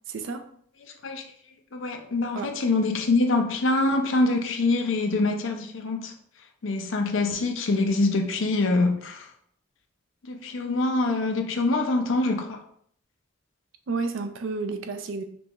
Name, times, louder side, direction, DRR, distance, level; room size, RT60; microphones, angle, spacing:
voice 1, 0.1-0.5 2.3-2.5 13.9-15.2, right 4 dB, 70° right, 0.5 m, -31 dB
voice 2, 1.7-6.1 6.6-9.2 10.3-12.6, left 2 dB, 75° left, 0.6 m, -24 dB
5.3 x 2.3 x 3.0 m
head